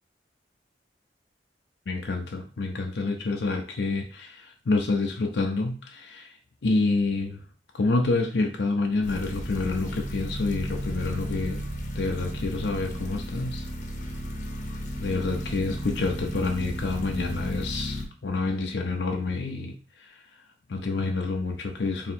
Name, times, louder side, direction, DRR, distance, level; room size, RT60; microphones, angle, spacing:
voice 1, 1.9-6.4 6.6-7.4 7.7-11.6 11.9-13.7 15.0-20.2 20.7-22.1, left 3 dB, 75° left, 2 dB, 0.5 m, -28 dB
sound 1, 9.0-18.1, equal, 45° left, 0.8 m, -34 dB
3.4 x 2.8 x 4.2 m, 0.39 s
head